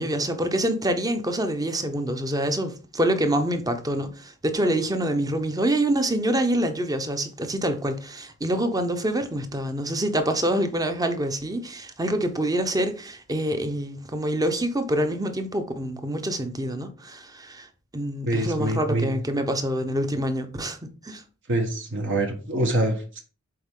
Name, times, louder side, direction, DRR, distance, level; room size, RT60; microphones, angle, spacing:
voice 1, 0.0-17.7 17.9-21.2, right 1 dB, 15° right, 0.8 m, -26 dB
voice 2, 18.2-19.1 21.5-23.2, right 1 dB, 60° right, 1.2 m, -25 dB
7.7 x 4.1 x 3.7 m
head